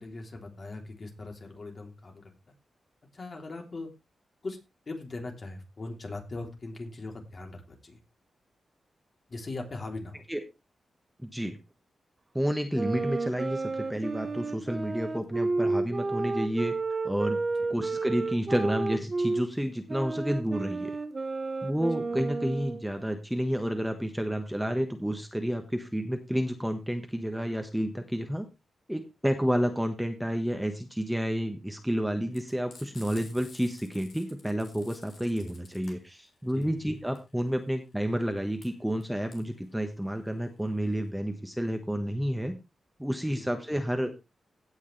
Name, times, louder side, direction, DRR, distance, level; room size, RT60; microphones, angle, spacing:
voice 1, 0.0-2.3 3.1-3.9 4.4-4.6 4.9-8.0 9.3-10.2 36.5-36.7 43.3-43.5, left 2 dB, 40° left, 2 dB, 3.3 m, -40 dB
voice 2, 11.2-11.6 12.3-16.7 17.0-17.4 17.7-20.9 21.6-28.5 28.9-42.5 43.0-44.1, equal, 5° right, 5 dB, 1.5 m, -30 dB
sound 1, 12.7-19.5 19.9-22.9, right 3 dB, 35° right, 1.1 m, -31 dB
Frying (food), 32.3-41.1, left 4 dB, 70° left, 3.6 m, -53 dB
17.0 x 6.5 x 3.3 m, 0.25 s
wide cardioid pair, 105°, 0 cm